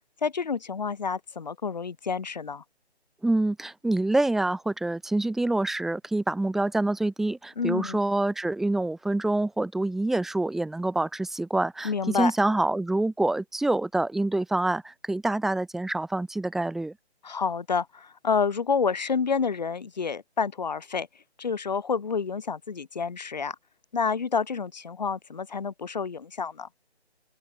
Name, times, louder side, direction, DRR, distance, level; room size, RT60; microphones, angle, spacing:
voice 1, 0.2-2.6 7.6-8.0 11.8-12.3 17.2-21.1 21.4-23.5 23.9-26.7, left 5 dB, 40° left, 5.0 m, -29 dB
voice 2, 3.2-16.9, right 2 dB, ahead, 3.4 m, -26 dB
open air
figure-of-eight pair, 170°, 34 cm